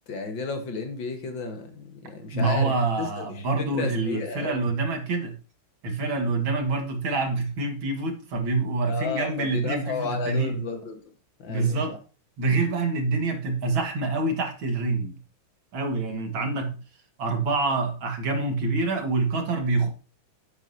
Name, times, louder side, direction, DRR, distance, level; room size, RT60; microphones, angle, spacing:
voice 1, 0.1-2.7 3.0-4.6 8.9-11.0 11.4-12.0, left 4 dB, 65° left, 2.1 m, -33 dB
voice 2, 2.3-5.3 5.8-10.6 11.5-12.0 12.4-15.2 15.7-16.7 17.2-19.9, right 3 dB, 70° right, 2.5 m, -26 dB
10.5 x 8.6 x 2.8 m
omnidirectional pair, 2.3 m